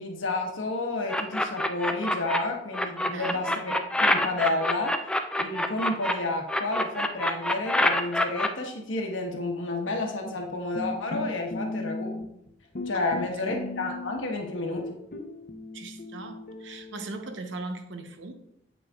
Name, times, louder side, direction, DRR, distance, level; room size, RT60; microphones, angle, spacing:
voice 1, 0.0-5.0 5.4-12.1 12.9-15.0, left 2 dB, 80° left, 1.1 m, -31 dB
sound 1, 1.1-2.4 2.7-6.1 6.5-8.5, left 1 dB, 5° left, 0.3 m, -25 dB
voice 2, 3.1-3.4 12.9-13.5 15.7-18.3, right 3 dB, 65° right, 0.7 m, -39 dB
sound 2, 10.7-12.5 12.7-14.3 14.8-17.4, left 2 dB, 45° left, 0.7 m, -36 dB
8.3 x 6.3 x 2.3 m
head